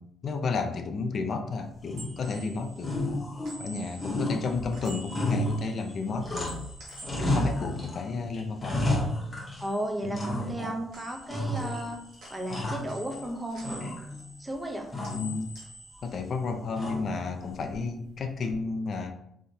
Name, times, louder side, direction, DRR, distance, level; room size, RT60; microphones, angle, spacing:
voice 1, 0.0-3.0 3.6-6.6 7.2-9.0 10.0-10.7 15.1-15.5 16.0-19.1, left 4 dB, 55° left, 6 dB, 0.4 m, -32 dB
sound 1, 1.6-8.9 9.2-10.6 10.9-16.9 17.2-18.5, equal, 80° right, 1.3 m, -49 dB
sound 2, 1.8-2.4 2.8-3.7 4.0-6.7 7.0-8.0 8.3-9.7 10.1-10.8 11.3-11.9 12.3-13.3 13.6-14.4 14.9-15.3 16.8-17.3, left 1 dB, 25° left, 1.0 m, -32 dB
voice 2, 9.6-12.0 12.3-13.8 14.4-14.9, right 1 dB, 15° right, 3 dB, 0.6 m, -34 dB
3.5 x 2.7 x 2.7 m, 0.76 s
cardioid pair, 90°, 0 cm